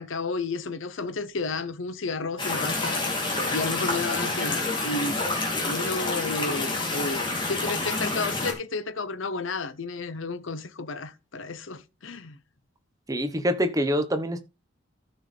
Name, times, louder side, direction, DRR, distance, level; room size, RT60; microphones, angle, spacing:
voice 1, 0.0-5.3 5.6-12.4, left 3 dB, 75° left, 0.8 m, -32 dB
sound 1, 2.4-8.5, left 2 dB, 25° left, 3.0 m, -28 dB
voice 2, 13.1-14.4, equal, 15° right, 1.1 m, -25 dB
14.5 x 6.3 x 3.4 m
head